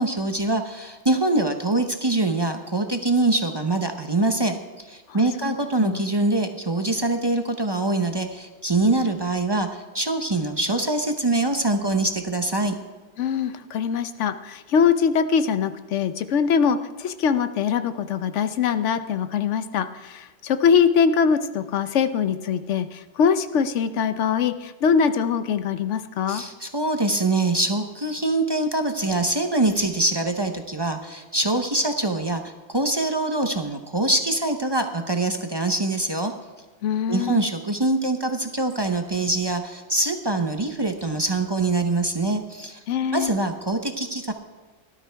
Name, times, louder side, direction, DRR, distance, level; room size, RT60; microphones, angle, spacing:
voice 1, 0.0-12.8 26.3-36.3 37.1-42.8 43.1-44.3, right 2 dB, 25° right, 5 dB, 0.7 m, -24 dB
voice 2, 5.4-6.0 13.2-26.4 36.8-37.4 42.9-43.3, left 7 dB, 85° left, 11 dB, 1.0 m, -23 dB
17.5 x 12.0 x 3.4 m, 1.3 s
omnidirectional pair, 1.2 m